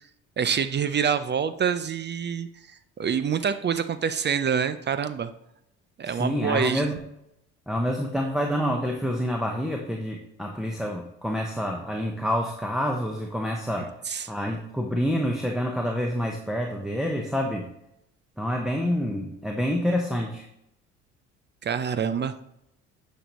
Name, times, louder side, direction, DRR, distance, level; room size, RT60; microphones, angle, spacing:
voice 1, 0.4-2.5 3.0-5.3 6.0-6.9 14.1-14.3 21.6-22.3, right 7 dB, 30° right, 12 dB, 0.6 m, -26 dB
voice 2, 6.0-7.0 7.7-13.9 14.3-17.6 18.4-20.5, equal, ahead, 1 dB, 1.0 m, -27 dB
9.8 x 5.3 x 3.1 m, 0.79 s
hypercardioid pair, 60°, 33 cm